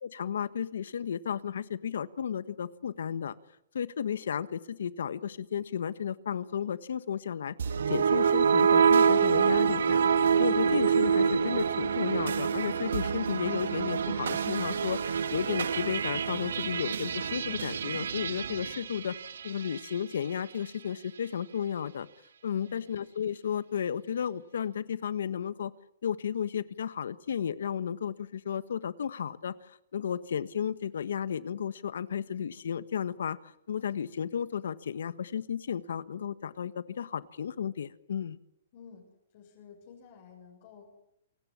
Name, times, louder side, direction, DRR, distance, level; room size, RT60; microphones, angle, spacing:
voice 1, 0.0-3.3 3.7-7.5 7.9-10.0 10.4-19.2 19.4-22.1 22.4-25.7 26.0-33.4 33.7-38.4, left 8 dB, 75° left, 15 dB, 1.4 m, -33 dB
sound 1, 7.6-19.9, right 6 dB, 85° right, 1.7 m, -26 dB
voice 2, 38.7-39.1 39.3-41.0, left 6 dB, 40° left, 1 dB, 7.1 m, -52 dB
27.5 x 18.0 x 10.0 m, 0.79 s
hypercardioid pair, 165°, 0 cm